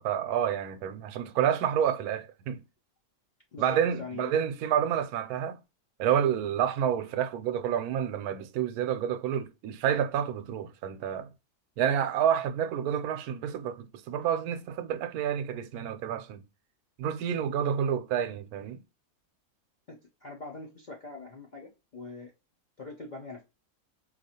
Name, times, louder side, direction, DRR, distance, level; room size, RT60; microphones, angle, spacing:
voice 1, 0.0-2.6 3.6-5.6 6.0-11.3 11.8-16.4 17.0-18.8, right 9 dB, 80° right, 1.0 m, -29 dB
voice 2, 3.5-4.3 19.9-22.3 22.8-23.4, left 3 dB, 55° left, 0.5 m, -43 dB
4.4 x 2.4 x 2.7 m
omnidirectional pair, 1.6 m